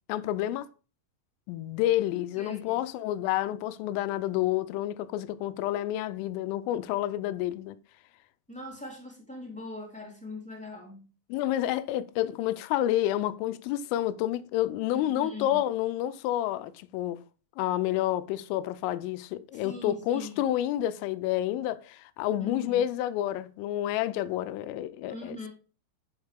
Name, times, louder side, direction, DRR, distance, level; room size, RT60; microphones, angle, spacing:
voice 1, 0.1-0.7 1.5-7.8 11.3-17.2 17.6-25.5, left 13 dB, 85° left, 3.1 m, -29 dB
voice 2, 2.4-2.8 8.5-11.1 14.9-15.6 19.5-20.4 22.4-22.8 25.1-25.5, left 2 dB, ahead, 2.2 m, -41 dB
9.2 x 7.3 x 3.5 m
omnidirectional pair, 6.0 m